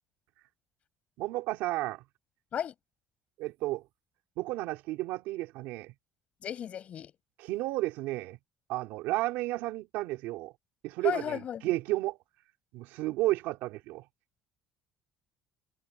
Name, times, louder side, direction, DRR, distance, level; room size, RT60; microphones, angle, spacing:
voice 1, 1.2-2.0 3.4-3.8 4.4-5.9 7.4-8.4 8.7-10.5 10.8-12.2 12.7-14.0, right 18 dB, 85° right, 3.0 m, -32 dB
voice 2, 6.4-7.1 11.0-11.6, left 9 dB, 40° left, 5.6 m, -34 dB
cardioid pair, 140°, 3 cm